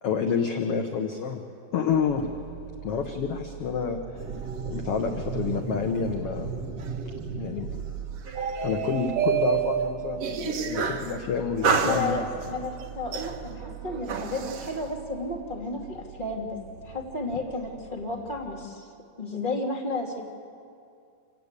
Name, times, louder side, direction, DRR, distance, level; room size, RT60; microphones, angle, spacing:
voice 1, 0.0-1.4 1.7-2.3 2.8-4.3 4.6-6.5 7.3-7.7 8.6-12.2, left 6 dB, 60° left, 4 dB, 1.6 m, -28 dB
sound 1, 1.9-18.5, right 9 dB, 35° right, 3.9 m, -45 dB
sound 2, 4.2-11.1 11.6-12.6 13.1-14.7, right 6 dB, 60° right, 1.9 m, -30 dB
voice 2, 11.8-18.9 19.2-20.2, left 2 dB, 15° left, -1 dB, 2.3 m, -32 dB
27.0 x 17.5 x 8.3 m, 2.4 s
omnidirectional pair, 4.0 m